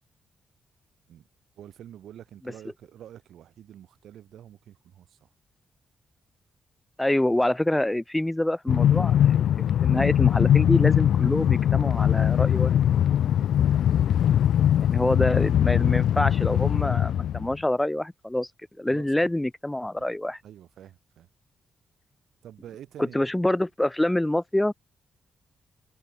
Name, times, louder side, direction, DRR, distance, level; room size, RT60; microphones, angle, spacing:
voice 1, 1.6-5.3 13.3-13.5 18.9-19.4 20.4-21.3 22.4-23.2, right 11 dB, 90° right, 4.2 m, -47 dB
voice 2, 7.0-9.4 9.8-12.7 14.8-18.5 18.8-20.4 23.0-24.7, left 1 dB, 10° left, 0.5 m, -26 dB
Train, 8.7-17.5, left 10 dB, 85° left, 0.3 m, -21 dB
wide cardioid pair, 130°, 0 cm